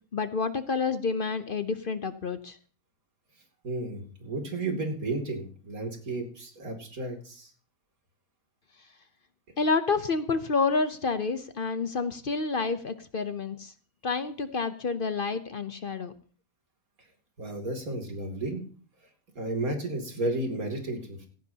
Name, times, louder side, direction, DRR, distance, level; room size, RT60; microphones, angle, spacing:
voice 1, 0.1-2.6 9.6-13.7 14.0-16.1, left 4 dB, 45° left, 11 dB, 0.8 m, -29 dB
voice 2, 3.6-7.5 17.4-18.6 19.3-21.3, right 2 dB, 85° right, 3 dB, 3.3 m, -33 dB
17.0 x 15.5 x 2.8 m, 0.42 s
omnidirectional pair, 1.5 m